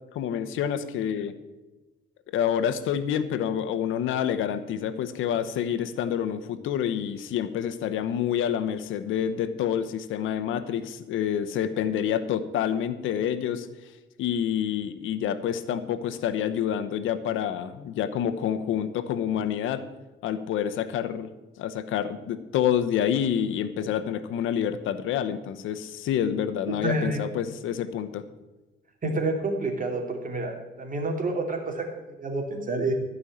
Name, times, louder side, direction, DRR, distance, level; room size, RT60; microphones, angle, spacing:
voice 1, 0.1-1.3 2.3-13.7 14.2-19.8 20.2-21.3 21.6-28.2, left 9 dB, 85° left, 10 dB, 0.9 m, -28 dB
voice 2, 26.8-27.3 29.0-32.9, right 2 dB, 40° right, 3 dB, 2.9 m, -29 dB
14.5 x 5.4 x 8.6 m, 1.1 s
cardioid pair, 90°, 20 cm